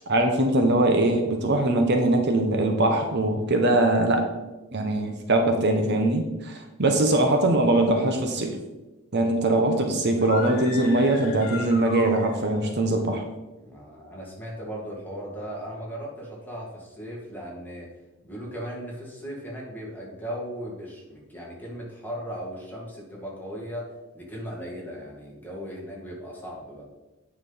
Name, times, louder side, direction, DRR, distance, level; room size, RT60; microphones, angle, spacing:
voice 1, 0.1-4.3 4.7-8.6 9.1-13.2, right 2 dB, 55° right, 4 dB, 1.0 m, -22 dB
sound 1, 10.2-12.8, left 3 dB, 45° left, 1.6 m, -37 dB
voice 2, 13.6-17.9 18.2-26.8, equal, 10° left, -4 dB, 2.2 m, -37 dB
9.1 x 5.6 x 4.2 m, 1.1 s
head